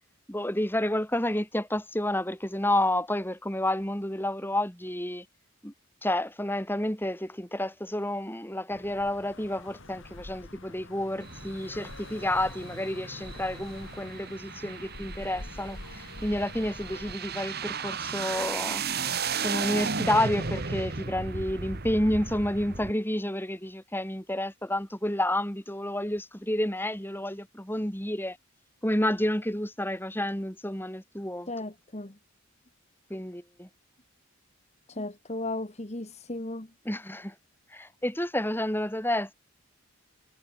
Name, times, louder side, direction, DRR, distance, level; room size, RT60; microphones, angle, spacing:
voice 1, 0.3-5.3 5.6-5.7 6.0-18.8 19.4-28.4 28.8-31.5 33.1-33.7 36.9-37.3 37.7-39.3, left 1 dB, 10° left, 3.6 m, -30 dB
sound 1, 8.7-17.1, left 2 dB, 55° left, 2.9 m, -45 dB
sound 2, 11.2-22.9, right 5 dB, 45° right, 1.6 m, -35 dB
voice 2, 31.5-32.1 34.9-36.7, left 2 dB, 30° left, 1.5 m, -35 dB
head